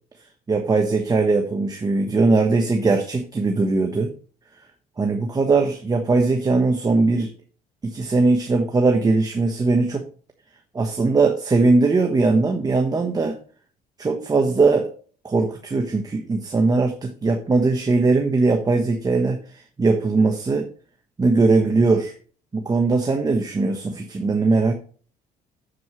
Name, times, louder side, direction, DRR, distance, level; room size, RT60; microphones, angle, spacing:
voice 1, 0.5-4.1 5.0-7.3 7.8-10.1 10.7-13.4 14.0-14.9 15.2-20.7 21.2-22.1 22.5-24.7, right 3 dB, 20° right, 4 dB, 1.3 m, -20 dB
7.8 x 7.8 x 3.2 m, 0.40 s
cardioid pair, 110°, 17 cm